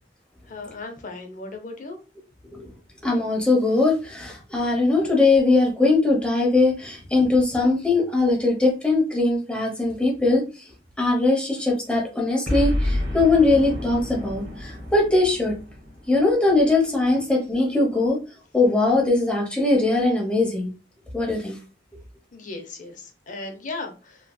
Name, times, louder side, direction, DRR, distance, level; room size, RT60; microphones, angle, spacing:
voice 1, 0.5-2.0 22.3-24.2, left 3 dB, 45° left, 4 dB, 0.7 m, -36 dB
voice 2, 3.0-10.4 11.0-15.5 16.1-18.2 18.5-20.7 21.1-21.5, left 2 dB, 5° left, -1 dB, 0.9 m, -20 dB
Boom, 12.5-16.9, left 1 dB, 65° right, 1.0 m, -29 dB
3.0 x 2.8 x 2.2 m, 0.31 s
head